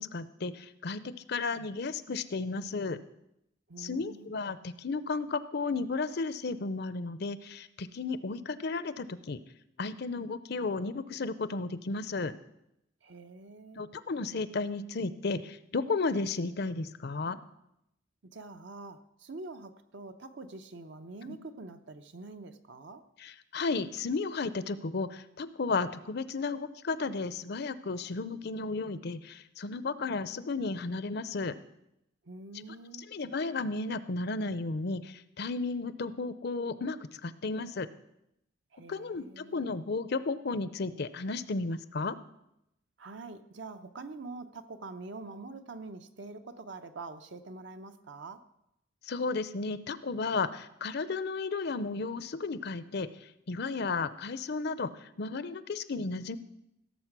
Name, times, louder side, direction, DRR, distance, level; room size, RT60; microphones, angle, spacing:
voice 1, 0.0-3.0 3.8-9.4 9.8-12.3 13.8-17.4 21.2-21.4 23.2-31.5 32.5-32.6 33.1-37.9 38.9-42.2 49.1-53.1 53.5-54.9 55.2-56.4, left 3 dB, 55° left, 14 dB, 0.6 m, -33 dB
voice 2, 3.7-4.4 13.0-13.9 18.3-23.0 32.2-33.1 38.7-39.7 43.0-48.4, right 3 dB, 65° right, 8 dB, 0.9 m, -45 dB
16.5 x 7.4 x 6.1 m, 0.83 s
head